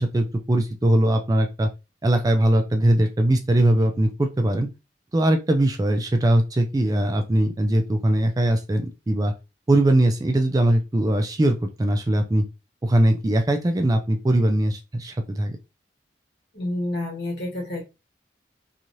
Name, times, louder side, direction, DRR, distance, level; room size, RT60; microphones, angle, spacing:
voice 1, 0.0-1.7 2.0-4.7 5.1-9.3 9.7-12.4 12.8-15.6, right 1 dB, 20° right, 0.3 m, -21 dB
voice 2, 16.5-17.8, left 1 dB, 70° left, 1.4 m, -29 dB
3.0 x 2.4 x 2.6 m
head